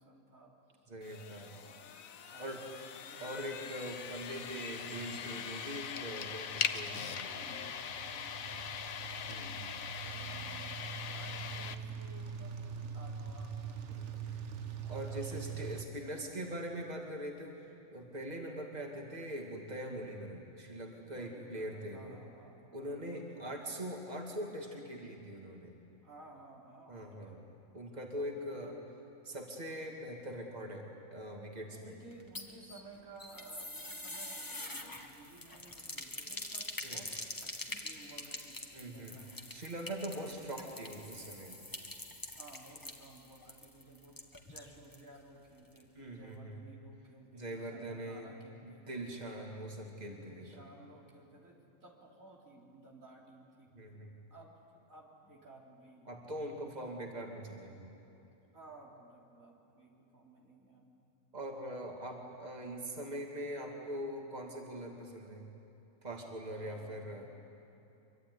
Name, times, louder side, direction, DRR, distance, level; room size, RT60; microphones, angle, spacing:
voice 1, 0.0-0.9 1.5-1.9 2.2-3.4 7.3-8.8 9.2-16.3 21.0-23.8 26.0-27.4 28.1-28.9 31.7-39.5 40.1-40.4 42.4-49.1 50.1-53.7 54.3-56.2 58.3-60.9 66.5-67.1, right 2 dB, 80° right, -2 dB, 4.0 m, -57 dB
voice 2, 0.9-1.6 2.4-2.6 3.2-7.4 9.3-9.7 14.0-14.1 14.9-17.5 17.9-22.2 22.7-25.7 26.9-27.4 27.7-28.7 29.2-31.9 36.8-37.1 38.7-39.2 39.5-41.6 45.9-46.6 47.3-48.3 48.6-50.6 53.7-54.1 56.1-57.9 61.3-65.4 66.0-67.3, equal, 30° right, 0 dB, 2.8 m, -42 dB
sound 1, 1.0-11.8, left 7 dB, 80° left, 1.4 m, -41 dB
sound 2, 3.9-15.8, right 7 dB, 60° right, 1.3 m, -45 dB
sound 3, 32.1-45.1 45.4-45.5 45.8-45.9, left 1 dB, 15° left, 1.8 m, -45 dB
25.0 x 24.0 x 9.8 m, 3.0 s
omnidirectional pair, 1.4 m